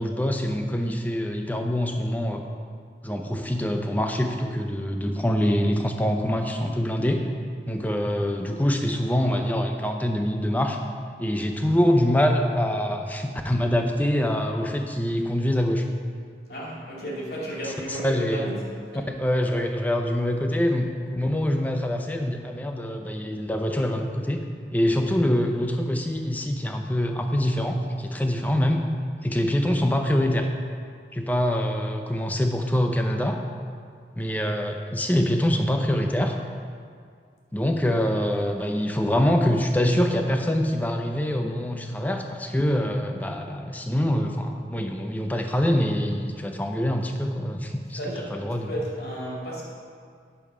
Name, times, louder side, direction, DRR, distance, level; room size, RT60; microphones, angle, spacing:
voice 1, 0.0-2.4 3.0-7.3 7.7-10.8 11.2-15.9 17.6-18.5 19.1-24.4 24.7-28.8 29.2-30.5 31.1-33.4 34.2-36.4 37.5-48.0 48.3-48.7, equal, 10° left, 4 dB, 0.5 m, -25 dB
voice 2, 16.5-19.1 48.0-49.6, equal, 70° left, -5 dB, 2.5 m, -33 dB
9.2 x 6.9 x 4.9 m, 2.1 s
head